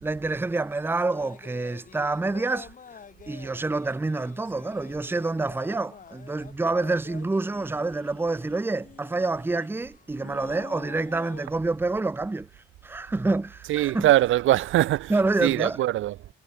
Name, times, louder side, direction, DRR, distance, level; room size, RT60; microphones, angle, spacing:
voice 1, 0.0-2.7 3.3-12.5 12.8-14.1 15.1-15.8, right 3 dB, 10° right, 0.7 m, -27 dB
sound 1, 1.1-11.5, left 6 dB, 40° left, 3.7 m, -47 dB
voice 2, 13.7-16.3, right 15 dB, 85° right, 1.4 m, -23 dB
cardioid pair, 90°, 20 cm